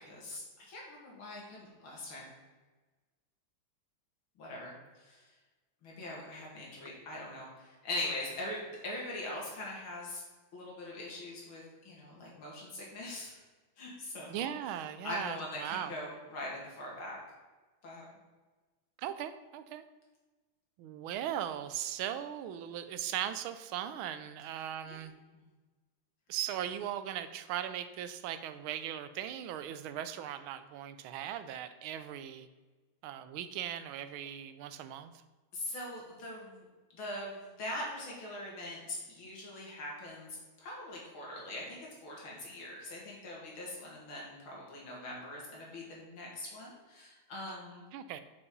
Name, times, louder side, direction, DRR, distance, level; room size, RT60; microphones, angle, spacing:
voice 1, 0.0-2.3 4.4-5.2 5.8-10.2 10.5-13.4 13.8-14.5 15.0-17.2 17.8-18.0 24.8-25.0 25.3-25.4 35.5-36.7 36.9-47.9, left 1 dB, 80° left, -3 dB, 3.0 m, -42 dB
voice 2, 14.3-15.9 19.0-19.8 20.8-25.1 26.3-32.5 33.0-35.1 47.9-48.2, right 10 dB, 85° right, 11 dB, 1.4 m, -38 dB
6.9 x 5.1 x 5.4 m, 1.3 s
omnidirectional pair, 2.2 m